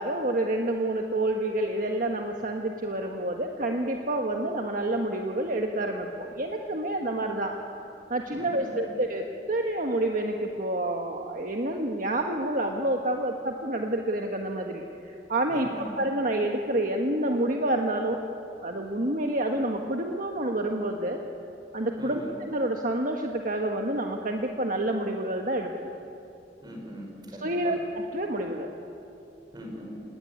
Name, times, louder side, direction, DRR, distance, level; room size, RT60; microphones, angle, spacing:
voice 1, 0.0-7.5 8.1-18.2 18.6-21.2 21.7-25.7 27.4-28.7, right 1 dB, 50° right, 3 dB, 1.4 m, -28 dB
voice 2, 8.3-8.7 15.5-15.9 22.0-22.4 26.6-27.7 29.5-30.0, equal, 25° right, 2 dB, 5.3 m, -40 dB
26.5 x 19.0 x 9.8 m, 2.8 s
head